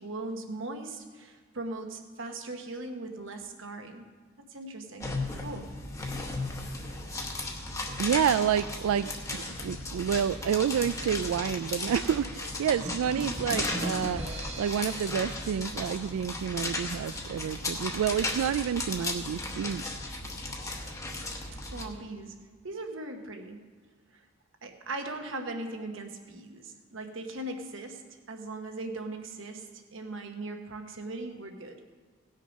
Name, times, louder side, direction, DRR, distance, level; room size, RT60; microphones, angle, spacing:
voice 1, 0.0-4.1 4.5-5.7 15.1-15.2 21.7-23.7 24.1-24.2 24.6-28.0 28.3-31.8, right 2 dB, 60° right, 5 dB, 1.2 m, -39 dB
sound 1, 5.0-21.8, left 2 dB, 15° left, 1.0 m, -36 dB
voice 2, 8.0-19.9, right 8 dB, 80° right, 13 dB, 0.3 m, -29 dB
sound 2, 12.8-16.6, right 1 dB, 25° right, 1.2 m, -39 dB
17.5 x 6.5 x 5.3 m, 1.5 s
head